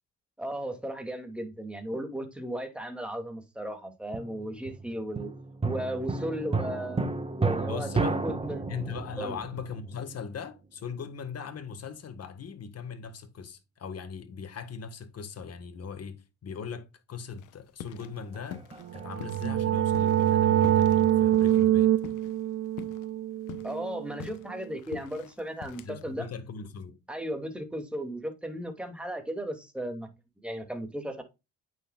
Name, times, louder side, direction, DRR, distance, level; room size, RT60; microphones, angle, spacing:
voice 1, 0.4-5.3 5.6-8.7 9.2-9.4 23.6-26.3 27.1-30.1 30.4-31.2, equal, 5° right, 2.4 m, -35 dB
sound 1, 4.1-10.5 18.0-19.1, right 3 dB, 20° right, 1.4 m, -33 dB
voice 2, 7.6-8.2 8.7-18.6 18.9-21.9 25.8-27.0, left 6 dB, 55° left, 1.7 m, -39 dB
sound 2, 17.4-18.1 18.4-19.5 19.9-22.5 22.8-23.1 23.4-26.1, left 9 dB, 85° left, 0.9 m, -44 dB
sound 3, 18.9-24.5, right 12 dB, 55° right, 0.4 m, -25 dB
8.7 x 6.1 x 2.4 m
cardioid pair, 90°, 30 cm